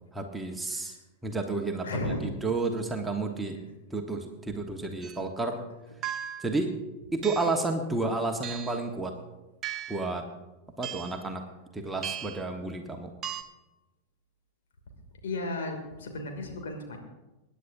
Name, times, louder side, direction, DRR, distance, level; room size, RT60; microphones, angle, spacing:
voice 1, 0.1-1.0 1.2-1.8 2.4-3.6 3.9-5.6 6.4-6.7 7.1-9.1 9.9-10.2 10.8-11.4 11.7-13.1, right 3 dB, 10° right, 3 dB, 1.3 m, -31 dB
voice 2, 1.8-2.3 15.2-17.0, left 2 dB, 60° left, 2 dB, 2.7 m, -34 dB
sound 1, 5.0-5.2 6.0-6.5 7.2-7.6 8.4-8.8 9.6-10.1 10.8-11.2 12.0-12.5 13.2-13.4, right 9 dB, 30° right, 0.8 m, -37 dB
25.0 x 10.0 x 2.7 m, 1.0 s
figure-of-eight pair, 90°, 0 cm